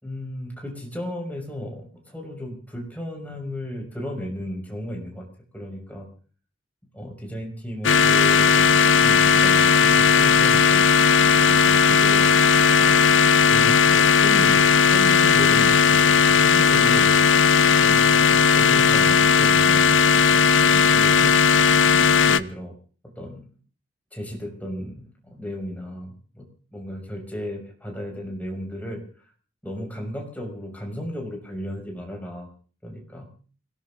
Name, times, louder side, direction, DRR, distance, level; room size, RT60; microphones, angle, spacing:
voice 1, 0.0-5.2 5.5-6.1 6.9-10.9 13.5-17.1 21.9-22.7 23.0-23.5 24.1-26.5 26.7-29.0 29.6-32.5 32.8-33.3, equal, 10° left, 0 dB, 5.8 m, -35 dB
sound 1, 7.8-22.4, left 6 dB, 80° left, 0.7 m, -16 dB
29.5 x 18.0 x 2.6 m, 0.42 s
head